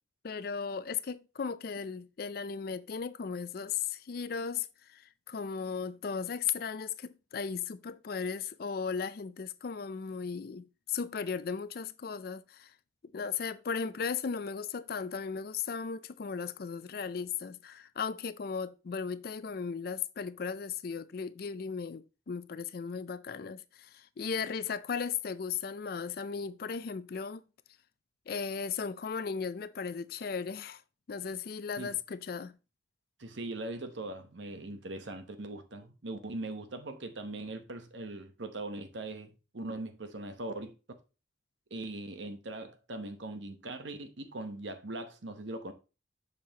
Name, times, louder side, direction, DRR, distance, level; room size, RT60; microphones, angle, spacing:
voice 1, 0.2-12.7 13.1-27.4 28.3-30.8 31.1-32.5, left 6 dB, 50° left, 0.4 m, -36 dB
voice 2, 33.2-40.7 41.7-45.7, right 2 dB, 70° right, 1.0 m, -40 dB
6.7 x 5.5 x 2.8 m
head